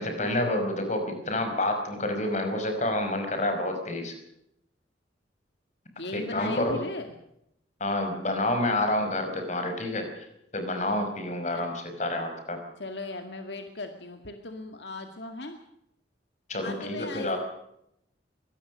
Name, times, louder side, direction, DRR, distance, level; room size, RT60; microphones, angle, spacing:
voice 1, 0.0-4.1 6.1-6.8 7.8-10.3 10.5-12.6 16.5-17.4, left 1 dB, 40° left, 6 dB, 5.4 m, -28 dB
voice 2, 6.0-7.1 11.5-11.7 12.8-15.6 16.6-17.4, left 2 dB, 70° left, 6 dB, 2.1 m, -37 dB
23.5 x 19.0 x 6.4 m, 0.78 s
head